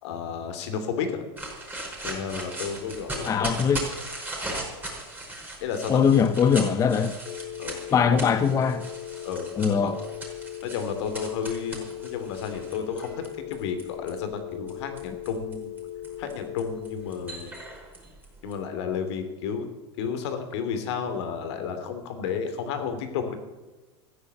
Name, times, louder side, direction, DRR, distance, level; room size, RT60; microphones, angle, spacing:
voice 1, 0.0-1.2 2.0-3.5 5.6-6.3 7.6-7.8 8.0-8.2 9.2-9.5 9.8-9.9 10.6-13.1 13.5-15.7 16.2-17.6 18.4-19.7 20.0-23.3, left 6 dB, 65° left, 7 dB, 2.9 m, -32 dB
sound 1, 1.4-14.1 14.7-18.5, right 2 dB, 10° right, 5.1 m, -38 dB
voice 2, 3.2-3.8 5.9-7.1 7.9-8.9 9.6-10.0, left 7 dB, 20° left, 10 dB, 0.8 m, -21 dB
sound 2, 7.2-17.3, left 12 dB, 45° left, 1.3 m, -38 dB
14.5 x 10.0 x 7.9 m, 1.2 s
supercardioid pair, 135°, 15 cm